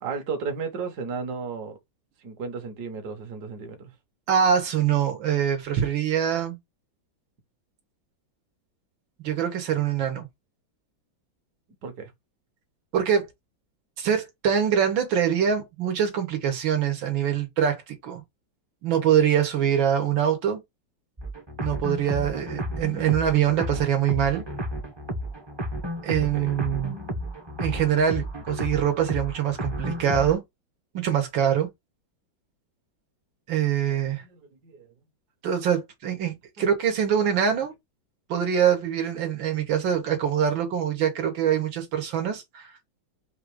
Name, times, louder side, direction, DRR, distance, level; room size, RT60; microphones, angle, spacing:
voice 1, 0.0-1.8 2.2-3.9 11.8-12.1 26.3-26.5 33.9-34.9 42.2-42.3, right 5 dB, 60° right, 1.5 m, -34 dB
voice 2, 4.3-6.6 9.2-10.3 12.9-13.3 14.0-18.2 18.8-20.6 21.6-24.4 26.0-26.9 27.6-30.4 30.9-31.7 33.5-34.2 35.4-37.7 38.3-42.7, right 9 dB, 80° right, 1.9 m, -24 dB
sound 1, 21.2-30.3, equal, 25° right, 0.5 m, -32 dB
4.2 x 2.6 x 4.7 m
omnidirectional pair, 2.1 m